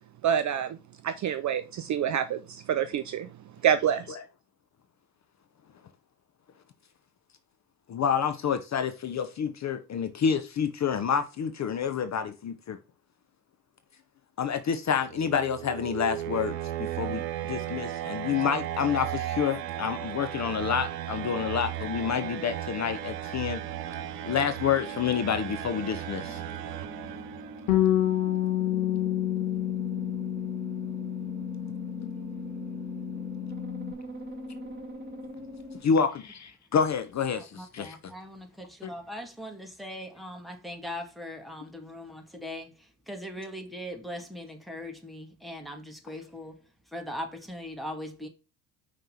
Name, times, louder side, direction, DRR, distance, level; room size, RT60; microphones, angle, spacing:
voice 1, 0.2-0.8 1.0-3.3 3.6-4.2, right 9 dB, 40° right, 0.6 m, -27 dB
voice 2, 7.9-12.8 14.4-23.6 24.3-26.4 32.0-32.1 35.8-38.0, left 7 dB, 35° left, 0.8 m, -28 dB
sound 1, 14.9-27.8, right 12 dB, 80° right, 0.7 m, -35 dB
sound 2, 18.2-19.3 19.8-35.8, right 1 dB, 20° right, 2.2 m, -43 dB
Bass guitar, 27.7-33.9, left 13 dB, 75° left, 1.2 m, -29 dB
voice 3, 37.4-48.3, left 1 dB, ahead, 1.8 m, -40 dB
5.5 x 3.4 x 5.5 m
hypercardioid pair, 65°, 48 cm